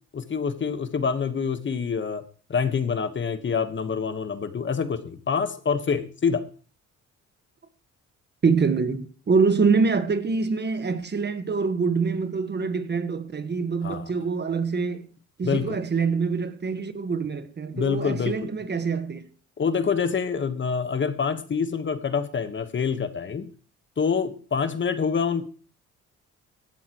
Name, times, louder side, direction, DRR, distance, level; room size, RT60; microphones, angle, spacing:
voice 1, 0.1-2.2 2.5-6.5 13.8-14.1 15.4-15.8 17.7-18.5 19.6-23.5 24.0-25.4, left 6 dB, 40° left, 1.3 m, -26 dB
voice 2, 8.4-15.1 15.4-19.2, right 5 dB, 35° right, 1.4 m, -25 dB
16.5 x 13.0 x 3.1 m
cardioid pair, 90°, 30 cm